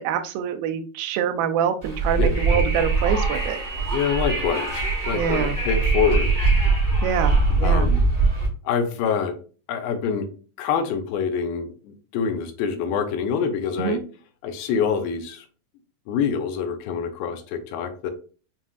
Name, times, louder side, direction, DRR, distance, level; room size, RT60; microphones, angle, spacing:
voice 1, 0.0-3.6 5.1-5.6 7.0-7.9 13.8-14.0, right 8 dB, 90° right, 7 dB, 2.5 m, -25 dB
Wind, 1.8-8.5, right 3 dB, 30° right, 1.1 m, -22 dB
voice 2, 3.9-6.3 7.6-8.0 8.7-9.4 9.7-10.3 10.6-14.0 14.4-15.5 16.1-18.1, left 6 dB, 90° left, 7 dB, 2.5 m, -25 dB
7.2 x 2.5 x 2.3 m, 0.38 s
omnidirectional pair, 4.1 m